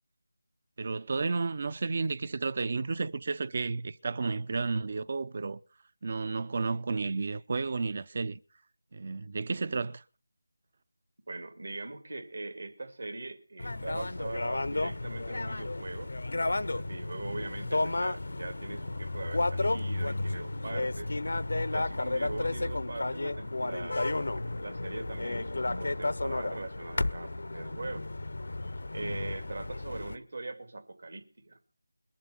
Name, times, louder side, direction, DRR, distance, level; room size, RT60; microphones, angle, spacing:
voice 1, 0.8-5.6 6.0-8.4 8.9-10.0, right 4 dB, 35° right, 0.6 m, -32 dB
voice 2, 11.3-16.1 16.5-21.2 21.7-28.1 28.9-31.6, right 2 dB, 60° right, 2.5 m, -41 dB
sound 1, 13.6-30.2, left 2 dB, 65° left, 0.7 m, -32 dB
21.5 x 7.5 x 5.9 m
figure-of-eight pair, 170°, 0 cm